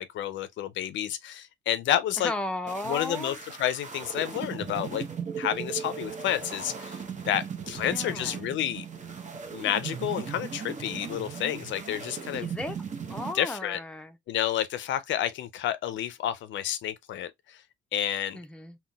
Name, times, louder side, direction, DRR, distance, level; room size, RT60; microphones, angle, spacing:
voice 1, 0.0-2.3 2.9-5.0 5.4-8.8 9.5-12.5 13.3-13.8 14.3-17.6 17.9-18.4, left 11 dB, 70° left, 0.4 m, -30 dB
voice 2, 2.2-3.4 7.8-8.4 12.2-12.8 13.1-14.2 18.3-18.8, left 2 dB, 5° left, 0.6 m, -35 dB
sound 1, 2.7-13.3, right 6 dB, 40° right, 0.8 m, -38 dB
3.7 x 2.2 x 2.2 m
cardioid pair, 90°, 20 cm